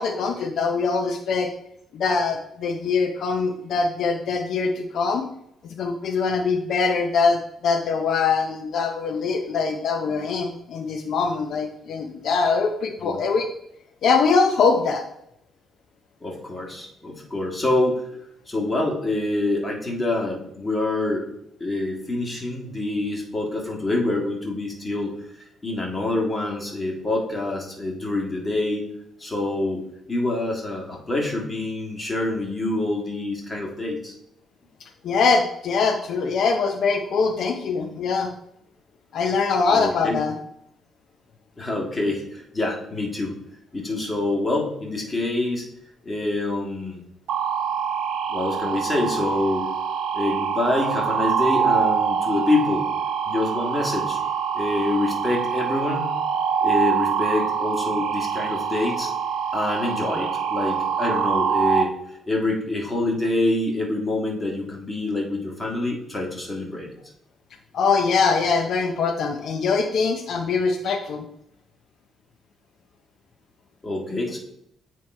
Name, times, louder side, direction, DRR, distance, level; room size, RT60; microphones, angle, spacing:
voice 1, 0.0-1.5 1.9-5.3 5.6-13.5 14.0-15.0 34.8-38.3 39.1-40.3 67.7-71.2, left 4 dB, 65° left, 5 dB, 0.5 m, -23 dB
voice 2, 16.2-18.1 18.5-21.3 21.6-25.1 25.6-28.9 29.2-29.8 30.1-34.2 39.7-40.3 41.6-43.4 43.7-45.7 46.0-47.0 48.3-49.7 50.1-52.9 53.3-54.2 54.5-56.1 56.6-59.1 59.5-66.9 73.8-74.4, left 2 dB, 15° left, -1 dB, 1.7 m, -26 dB
sound 1, 47.3-61.8, right 7 dB, 80° right, 0.7 m, -25 dB
8.7 x 3.0 x 4.3 m, 0.76 s
cardioid pair, 115°, 0 cm